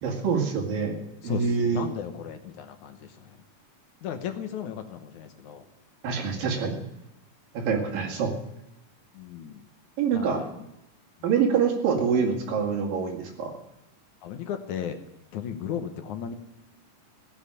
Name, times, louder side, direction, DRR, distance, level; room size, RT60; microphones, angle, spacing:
voice 1, 0.0-1.9 6.0-6.8 7.5-8.4 10.0-10.4 11.2-13.6, right 6 dB, 80° right, 2 dB, 3.8 m, -26 dB
voice 2, 1.2-3.4 4.0-5.7 9.1-9.6 10.1-10.6 14.2-15.0 15.3-16.3, left 8 dB, 70° left, 7 dB, 2.2 m, -35 dB
17.0 x 8.4 x 9.9 m, 0.86 s
omnidirectional pair, 3.9 m